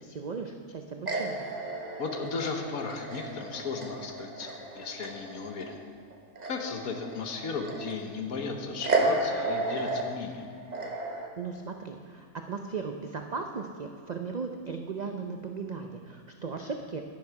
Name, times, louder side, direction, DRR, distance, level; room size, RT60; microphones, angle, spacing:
voice 1, 0.0-1.5 11.4-17.0, right 5 dB, 60° right, 4 dB, 0.4 m, -37 dB
sound 1, 1.1-5.8 6.1-8.2 8.8-11.3, right 2 dB, 35° right, 1.0 m, -33 dB
voice 2, 2.0-5.8 6.4-10.4, left 4 dB, 75° left, 4 dB, 1.4 m, -35 dB
11.0 x 10.5 x 4.7 m, 2.3 s
omnidirectional pair, 1.5 m